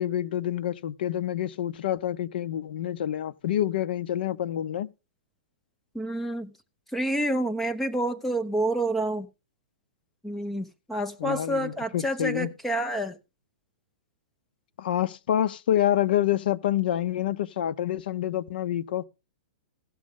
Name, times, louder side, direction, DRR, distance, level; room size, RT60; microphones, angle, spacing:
voice 1, 0.0-4.9 11.2-12.5 14.8-19.0, left 11 dB, 65° left, 0.6 m, -27 dB
voice 2, 5.9-6.5 6.9-9.3 10.2-13.2, right 1 dB, 5° left, 0.7 m, -28 dB
16.0 x 6.2 x 3.6 m
hypercardioid pair, 165°, 6 cm